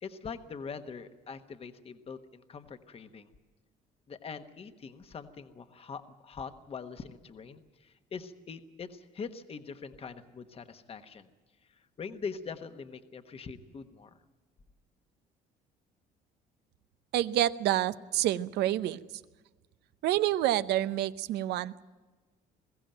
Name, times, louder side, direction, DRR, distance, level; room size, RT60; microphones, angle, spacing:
voice 1, 0.0-3.3 4.1-11.3 11.6-14.2, left 5 dB, 35° left, 9 dB, 1.2 m, -43 dB
voice 2, 17.1-19.0 20.0-21.8, right 13 dB, 80° right, 14 dB, 0.7 m, -28 dB
21.5 x 15.5 x 9.0 m, 1.3 s
cardioid pair, 110°, 17 cm